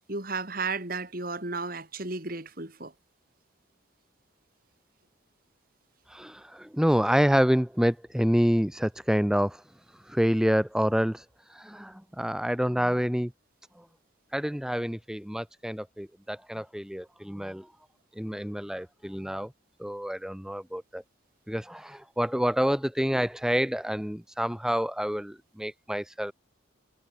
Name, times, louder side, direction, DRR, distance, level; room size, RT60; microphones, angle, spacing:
voice 1, 0.1-2.9, right 3 dB, 45° right, 3.0 m, -33 dB
voice 2, 6.1-9.6 10.1-11.2 11.5-13.3 14.3-17.7 18.2-19.5 19.8-21.0 21.5-26.3, equal, 5° right, 0.6 m, -27 dB
head